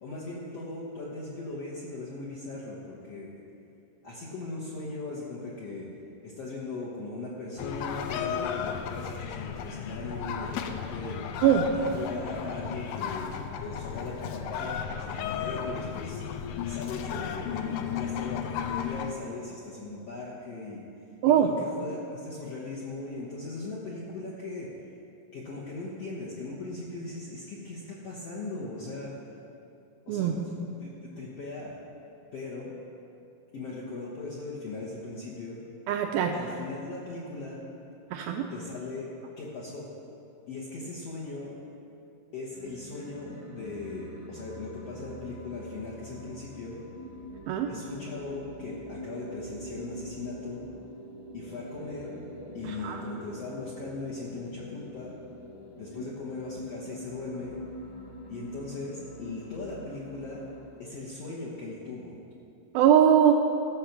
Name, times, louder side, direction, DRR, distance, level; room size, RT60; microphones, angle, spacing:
voice 1, 0.0-3.4 4.0-5.9 6.2-11.2 11.7-13.3 13.6-16.2 16.7-20.8 21.2-24.7 25.3-29.1 30.1-30.9 31.2-31.8 32.3-32.7 33.5-35.6 36.3-37.6 38.5-39.1 39.4-39.9 40.5-41.6 42.3-46.8 47.7-50.7 51.3-52.2 52.5-55.1 55.8-57.6 58.3-60.4 60.8-62.2, left 3 dB, 65° left, -6 dB, 1.6 m, -39 dB
Luang Prabang Morning, 7.6-19.1, left 8 dB, 80° left, 2.2 m, -34 dB
voice 2, 21.2-21.5 30.1-30.3 35.9-36.3 38.1-38.5 47.5-47.7 52.6-53.0 62.7-63.3, right 9 dB, 80° right, 3 dB, 2.2 m, -22 dB
sound 1, 42.5-61.0, equal, 50° left, 1.4 m, -45 dB
13.5 x 7.3 x 6.0 m, 2.6 s
omnidirectional pair, 4.7 m